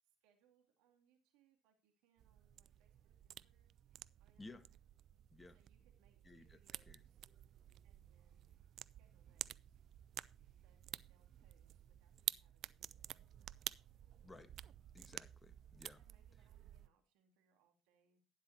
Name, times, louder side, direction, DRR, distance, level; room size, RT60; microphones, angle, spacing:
voice 1, 0.0-3.7 4.2-4.8 5.5-7.3 7.8-8.5 8.8-9.8 10.5-13.1 15.9-18.2, right 7 dB, 75° right, 3 dB, 2.5 m, -78 dB
sound 1, 2.2-16.9, right 11 dB, 60° right, 0.4 m, -51 dB
voice 2, 6.2-6.6 6.9-7.0 14.2-14.5 14.9-16.0, left 2 dB, 20° left, 11 dB, 1.5 m, -57 dB
12.0 x 10.0 x 2.8 m, 0.32 s
hypercardioid pair, 60°, 0 cm